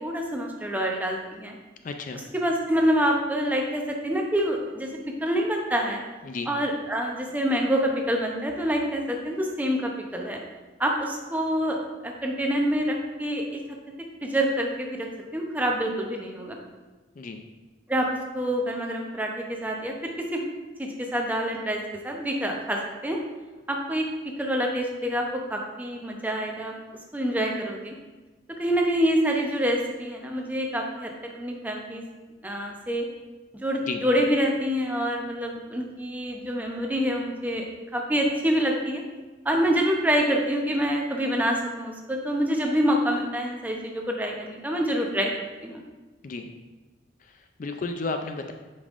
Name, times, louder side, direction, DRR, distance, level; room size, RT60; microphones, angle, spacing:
voice 1, 0.0-1.5 2.3-4.9 5.2-6.0 6.5-10.4 10.8-11.8 12.0-13.6 14.2-16.6 17.9-18.1 18.3-20.4 20.8-23.2 23.7-24.1 24.4-26.7 27.1-27.9 28.6-32.0 32.4-33.0 33.5-37.7 37.9-39.0 39.4-45.3 45.6-45.8, equal, 10° right, 1 dB, 0.7 m, -26 dB
voice 2, 1.8-2.2 6.2-6.5 17.2-17.4 33.9-34.0 46.2-46.5 47.2-48.5, left 3 dB, 45° left, 6 dB, 0.4 m, -33 dB
8.4 x 5.3 x 2.5 m, 1.2 s
head